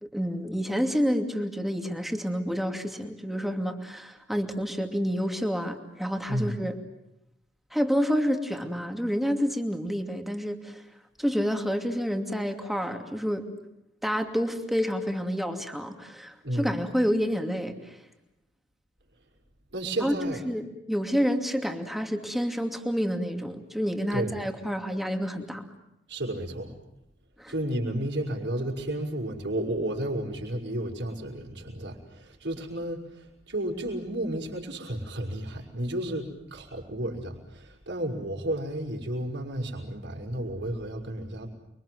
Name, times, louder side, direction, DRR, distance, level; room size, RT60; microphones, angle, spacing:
voice 1, 0.0-6.7 7.7-10.8 11.2-13.5 14.0-18.0 20.0-25.6 27.4-27.5, equal, ahead, 4 dB, 2.6 m, -29 dB
voice 2, 16.4-16.8 19.7-20.4 24.1-24.4 26.1-26.8 27.5-41.5, right 1 dB, 65° right, 0 dB, 5.7 m, -32 dB
30.0 x 24.0 x 7.8 m, 0.84 s
head